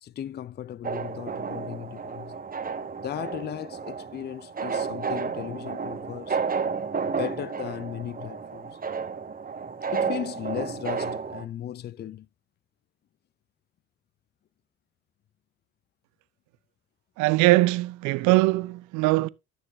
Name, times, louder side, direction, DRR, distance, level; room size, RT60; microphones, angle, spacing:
voice 1, 0.0-2.4 3.0-6.4 7.1-8.8 9.9-12.3, left 10 dB, 35° left, 0.5 m, -36 dB
sound 1, 0.8-11.4, right 5 dB, 30° right, 1.2 m, -32 dB
voice 2, 17.2-19.3, right 20 dB, 70° right, 0.6 m, -21 dB
13.5 x 6.6 x 2.7 m
hypercardioid pair, 65°, 31 cm